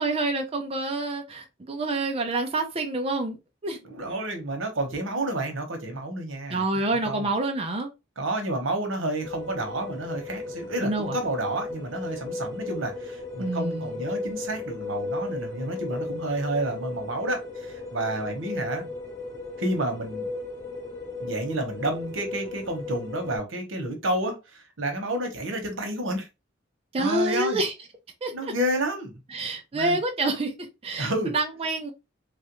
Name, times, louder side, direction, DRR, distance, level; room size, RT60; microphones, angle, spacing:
voice 1, 0.0-3.4 3.6-3.8 6.5-7.9 10.8-11.2 13.4-13.9 26.9-27.7 28.2-28.5 29.3-30.5 30.8-31.9, right 2 dB, 30° right, 0.5 m, -27 dB
voice 2, 3.8-6.6 6.9-7.3 8.2-18.9 19.6-20.3 21.2-26.3 27.0-27.6 28.3-29.2 29.7-30.0 31.0-31.3, right 1 dB, 85° right, 1.0 m, -30 dB
sound 1, 9.2-23.4, left 3 dB, 20° left, 0.9 m, -35 dB
3.2 x 2.5 x 2.9 m
head